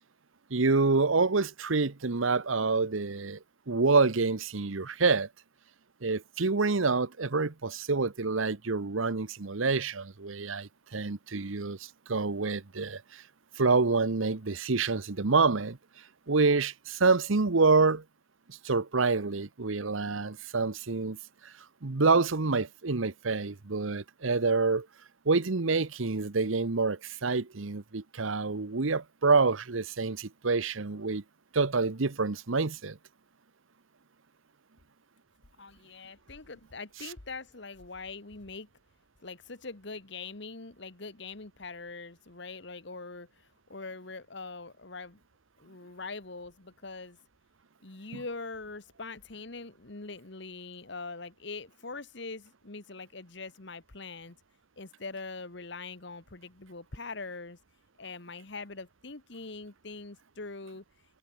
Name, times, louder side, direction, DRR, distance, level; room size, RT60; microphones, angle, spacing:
voice 1, 0.5-3.4 3.7-5.3 6.0-13.2 13.6-15.8 16.3-18.0 18.6-21.2 21.4-21.5 21.8-24.9 25.3-31.2 31.5-33.0, right 4 dB, 80° right, 1.0 m, -27 dB
voice 2, 35.6-38.7 39.2-45.2 45.6-47.2 47.8-54.4 54.8-57.6 58.0-60.8, left 3 dB, 60° left, 1.5 m, -43 dB
head